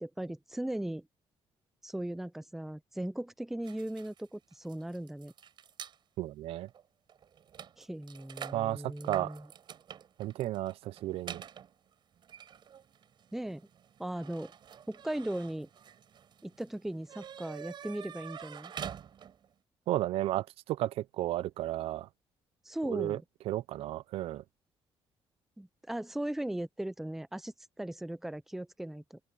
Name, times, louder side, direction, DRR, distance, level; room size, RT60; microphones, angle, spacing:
voice 1, 0.0-1.0 1.8-5.3 7.8-9.5 13.3-13.6 14.0-14.5 14.9-15.7 16.4-18.7 22.7-23.2 25.6-29.2, right 1 dB, 5° right, 0.4 m, -38 dB
sound 1, 3.6-6.0 6.7-6.8 7.1-19.5, right 8 dB, 50° right, 6.2 m, -47 dB
voice 2, 6.2-6.7 8.5-9.3 10.2-11.4 19.9-22.1 22.9-23.2 23.5-24.4, right 14 dB, 85° right, 0.5 m, -33 dB
open air
cardioid pair, 135°, 10 cm